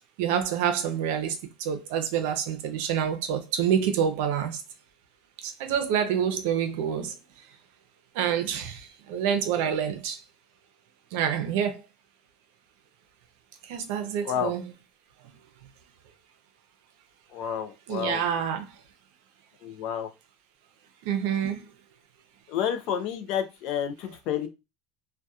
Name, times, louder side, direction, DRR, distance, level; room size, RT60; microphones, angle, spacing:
voice 1, 0.2-1.3 1.6-4.6 5.4-7.1 8.2-10.2 11.1-11.8 13.7-14.6 17.9-18.7 21.0-21.6, right 8 dB, 70° right, 0.5 m, -27 dB
voice 2, 17.3-18.2 19.6-20.1 22.5-24.5, left 9 dB, 55° left, 0.4 m, -30 dB
2.7 x 2.2 x 2.3 m
cardioid pair, 155°, 0 cm